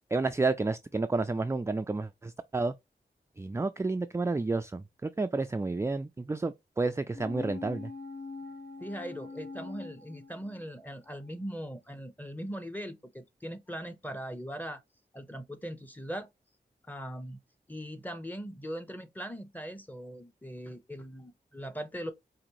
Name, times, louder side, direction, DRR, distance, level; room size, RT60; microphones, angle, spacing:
voice 1, 0.1-2.7 3.4-7.9, right 3 dB, 15° right, 0.3 m, -30 dB
sound 1, 7.1-10.9 11.2-11.3, left 3 dB, 70° left, 1.1 m, -43 dB
voice 2, 8.8-14.8 15.1-16.3 16.9-17.4 17.7-22.1, equal, 10° left, 0.9 m, -40 dB
5.0 x 2.7 x 3.0 m
cardioid pair, 60°, 17 cm